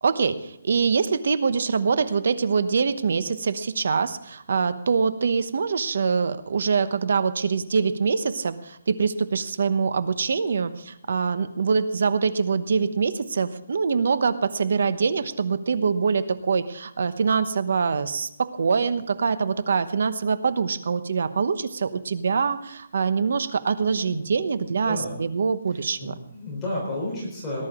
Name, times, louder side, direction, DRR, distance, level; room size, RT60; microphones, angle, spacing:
voice 1, 0.0-26.1, right 5 dB, 60° right, 13 dB, 1.0 m, -24 dB
voice 2, 24.8-25.2 25.7-27.7, left 1 dB, 10° left, -5 dB, 3.7 m, -32 dB
19.0 x 11.0 x 3.7 m, 0.76 s
hypercardioid pair, 175°, 0 cm